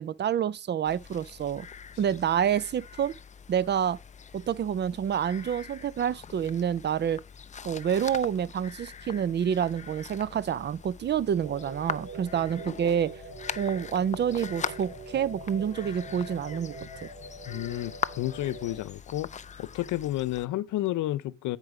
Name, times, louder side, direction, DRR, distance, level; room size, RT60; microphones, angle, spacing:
voice 1, 0.0-1.7 2.0-3.1 3.5-4.0 4.3-7.2 7.6-13.1 13.6-17.1, right 8 dB, 35° right, 0.4 m, -28 dB
sound 1, 0.8-20.5, left 6 dB, 25° left, 0.4 m, -42 dB
sound 2, 11.4-18.8, right 2 dB, 65° right, 3.3 m, -43 dB
voice 2, 17.5-19.3 19.6-21.6, left 15 dB, 80° left, 0.6 m, -31 dB
9.6 x 4.5 x 4.9 m
cardioid pair, 90°, 30 cm